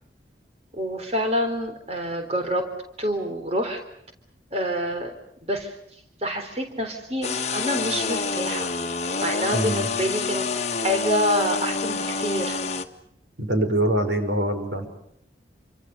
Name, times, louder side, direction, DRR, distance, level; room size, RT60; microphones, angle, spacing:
voice 1, 0.7-2.7 3.0-3.8 4.5-5.1 5.4-5.7 6.2-8.7 9.2-10.5 10.8-12.6, equal, 35° right, 5 dB, 3.8 m, -27 dB
sound 1, 7.2-12.8, left 4 dB, 35° left, 1.7 m, -27 dB
voice 2, 9.5-9.9 13.4-14.9, right 1 dB, 90° right, 7 dB, 5.5 m, -24 dB
28.5 x 26.0 x 6.8 m, 0.72 s
head